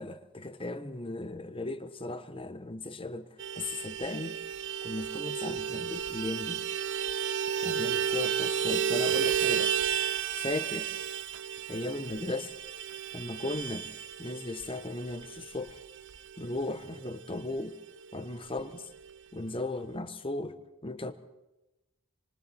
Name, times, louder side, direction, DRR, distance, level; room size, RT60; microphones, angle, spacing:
voice 1, 0.0-3.3 3.6-4.4 4.8-6.7 7.6-9.7 10.3-10.9 11.7-12.5 13.1-13.9 14.2-15.8 16.4-17.8 18.1-18.9 19.3-21.1, left 2 dB, 25° left, 1.1 m, -36 dB
Vehicle horn car horn honking, 3.4-17.3 17.6-17.7 18.0-18.2 18.4-19.1, right 8 dB, 55° right, 0.7 m, -32 dB
27.5 x 26.0 x 4.3 m
head